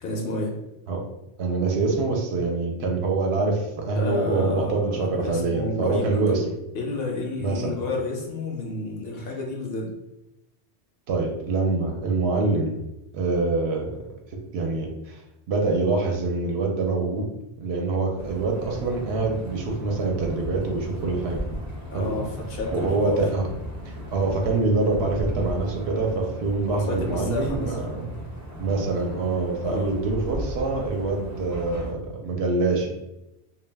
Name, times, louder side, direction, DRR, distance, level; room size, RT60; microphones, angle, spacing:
voice 1, 0.0-0.5 4.0-6.4 6.7-9.9 21.9-23.2 26.7-27.8 29.6-29.9, left 2 dB, 65° left, 0 dB, 0.7 m, -30 dB
voice 2, 1.4-6.4 7.4-7.8 11.1-12.8 13.1-13.9 14.5-15.2 15.5-17.3 17.6-21.4 21.9-22.1 22.7-23.5 23.8-28.1 28.6-32.9, right 3 dB, 70° right, 1 dB, 0.8 m, -25 dB
sound 1, 18.2-31.9, equal, 30° right, 0.3 m, -36 dB
2.2 x 2.1 x 3.2 m, 0.92 s
omnidirectional pair, 1.2 m